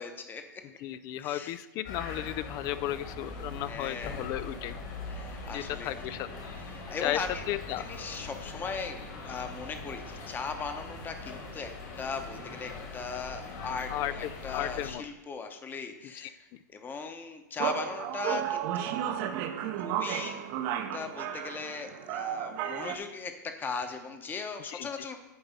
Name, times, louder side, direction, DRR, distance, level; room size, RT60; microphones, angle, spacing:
voice 1, 0.0-0.6 1.2-1.6 3.7-4.2 5.1-6.0 6.7-7.4 7.8-11.7 12.0-19.0 19.8-20.4 20.9-25.2, left 5 dB, 20° left, 7 dB, 1.0 m, -38 dB
voice 2, 0.8-4.7 5.5-6.3 7.0-7.9 13.9-15.0 16.1-16.6 24.7-25.0, left 13 dB, 35° left, 14 dB, 0.3 m, -35 dB
sound 1, 1.8-14.9, left 3 dB, 55° left, 2.6 m, -41 dB
sound 2, 17.6-23.0, right 10 dB, 45° right, 0.7 m, -33 dB
9.5 x 3.9 x 5.4 m, 1.1 s
hypercardioid pair, 115°, 10 cm